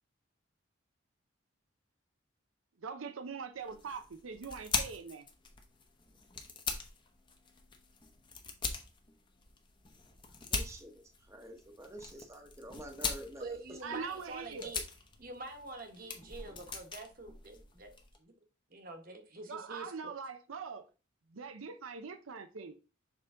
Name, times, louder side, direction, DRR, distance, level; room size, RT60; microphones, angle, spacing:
voice 1, 2.8-5.2 13.8-14.7 19.5-20.8 21.3-22.7, right 5 dB, 85° right, 0.6 m, -42 dB
sound 1, 3.6-18.2, left 4 dB, 25° left, 0.9 m, -42 dB
voice 2, 10.5-13.6, right 1 dB, 15° right, 0.9 m, -48 dB
voice 3, 13.4-14.8 15.2-17.9 18.2-18.3 18.7-20.1, right 3 dB, 45° right, 1.2 m, -46 dB
6.7 x 3.8 x 3.7 m
head